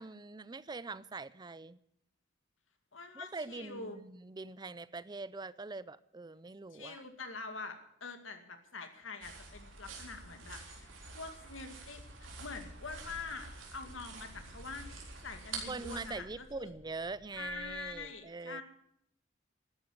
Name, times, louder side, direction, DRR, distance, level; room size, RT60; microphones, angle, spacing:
voice 1, 0.0-1.8 3.1-7.0 15.7-18.6, right 3 dB, 20° right, 18 dB, 0.5 m, -43 dB
voice 2, 2.9-4.0 6.7-16.7 17.3-18.6, left 4 dB, 85° left, 7 dB, 2.1 m, -45 dB
sound 1, 9.2-16.2, right 3 dB, 85° right, 4.0 m, -47 dB
sound 2, 11.8-17.9, equal, 70° left, 4.4 m, -58 dB
13.0 x 10.5 x 9.7 m, 0.75 s
head